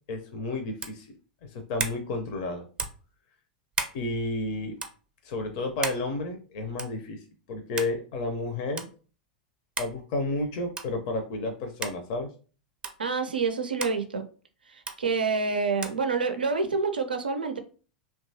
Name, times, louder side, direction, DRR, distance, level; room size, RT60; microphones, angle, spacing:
voice 1, 0.1-1.1 1.4-2.7 3.9-4.8 5.2-8.9 9.8-12.3, left 2 dB, 55° left, 0.5 m, -31 dB
sound 1, 0.8-1.0 1.8-2.0 2.8-3.0 3.7-4.0 4.8-4.9 5.8-6.0 6.8-7.0 7.8-8.0 8.8-8.9 9.8-10.0 10.7-11.0 11.8-12.0 12.8-13.0 13.8-14.0 14.9-15.0 15.8-16.0, right 4 dB, 20° right, 0.5 m, -33 dB
voice 2, 13.0-14.2 14.7-17.6, right 4 dB, 85° right, 0.4 m, -27 dB
2.8 x 2.2 x 2.7 m
figure-of-eight pair, 90°, 5 cm